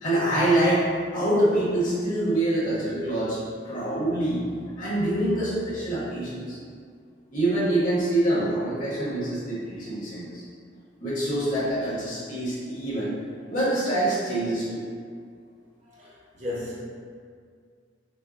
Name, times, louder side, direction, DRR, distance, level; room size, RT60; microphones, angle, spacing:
voice 1, 0.0-0.9 1.1-3.4 3.6-4.4 4.8-6.6 7.3-10.4 11.0-13.1 13.5-14.8, right 1 dB, 45° left, -9 dB, 1.4 m, -25 dB
voice 2, 15.8-16.8, left 2 dB, 35° right, -7 dB, 0.9 m, -37 dB
5.6 x 2.4 x 2.8 m, 2.1 s
head